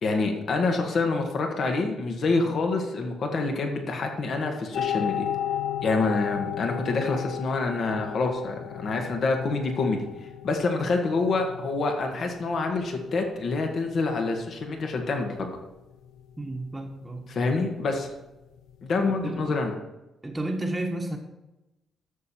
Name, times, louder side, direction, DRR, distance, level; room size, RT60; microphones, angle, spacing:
voice 1, 0.0-5.3 5.8-10.0 10.4-15.5 17.3-18.1 18.8-19.7, left 3 dB, 55° left, 3 dB, 1.7 m, -27 dB
sound 1, 4.7-19.5, left 10 dB, 85° left, 0.6 m, -36 dB
voice 2, 16.4-17.2 19.0-19.5 20.2-21.2, right 1 dB, 15° right, 0 dB, 1.3 m, -32 dB
12.0 x 7.0 x 4.5 m, 0.97 s
cardioid pair, 90°, 0 cm